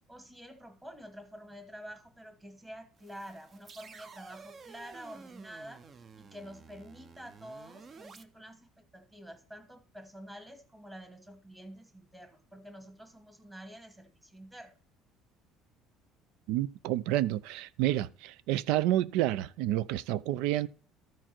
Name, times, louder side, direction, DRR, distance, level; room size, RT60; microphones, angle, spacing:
voice 1, 0.1-14.7, equal, 10° right, 1.3 m, -48 dB
sound 1, 3.0-8.2, right 5 dB, 30° right, 0.6 m, -52 dB
voice 2, 16.5-20.7, right 14 dB, 80° right, 0.4 m, -29 dB
13.5 x 4.6 x 4.4 m
cardioid pair, 140°, 0 cm